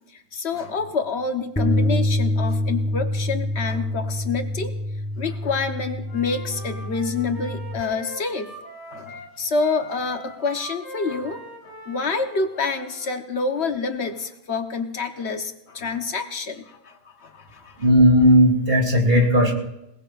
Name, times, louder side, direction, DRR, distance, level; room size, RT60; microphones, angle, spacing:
voice 1, 0.1-4.7 5.2-8.5 8.9-11.4 11.9-17.8, left 4 dB, 80° left, 5 dB, 1.4 m, -27 dB
sound 1, 1.6-7.8, left 1 dB, 5° left, 1.0 m, -26 dB
Wind instrument woodwind instrument, 6.0-13.1, equal, 20° right, 5.4 m, -41 dB
voice 2, 17.8-19.5, equal, 65° right, 0 dB, 3.3 m, -16 dB
27.5 x 18.5 x 2.5 m, 0.85 s
omnidirectional pair, 1.1 m